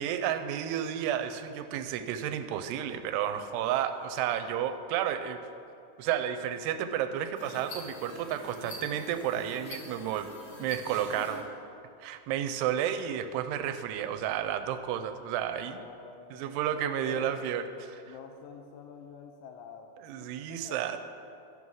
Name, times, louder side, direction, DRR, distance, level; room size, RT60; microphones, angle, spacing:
voice 1, 0.0-5.4 6.0-10.3 10.6-11.5 12.0-15.8 16.3-18.2 20.0-21.0, right 10 dB, 85° right, 9 dB, 2.7 m, -32 dB
sound 1, 7.3-11.4, left 3 dB, 60° left, 2.0 m, -44 dB
voice 2, 15.5-16.7 17.0-17.5 18.1-19.9 20.2-21.0, left 6 dB, 85° left, 4 dB, 2.0 m, -48 dB
13.5 x 5.5 x 6.2 m, 2.5 s
omnidirectional pair, 4.6 m